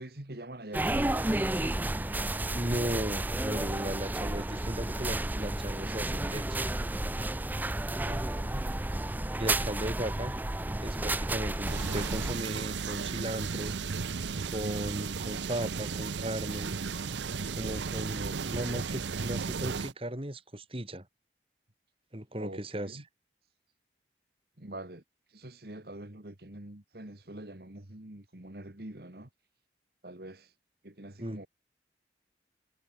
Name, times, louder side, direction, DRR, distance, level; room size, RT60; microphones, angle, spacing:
voice 1, 0.0-1.4 8.1-8.7 18.1-18.7 22.4-23.0 24.6-25.0 25.3-29.3 30.0-30.5 30.8-31.5, right 1 dB, 60° right, 2.2 m, -45 dB
sound 1, 0.7-12.3, right 1 dB, 10° right, 0.4 m, -32 dB
voice 2, 2.5-6.7 9.4-10.3 10.8-13.8 14.5-16.8 17.5-21.1 22.1-23.0 31.2-31.4, right 1 dB, 30° right, 3.1 m, -36 dB
sound 2, 11.6-19.9, right 5 dB, 90° right, 0.7 m, -35 dB
head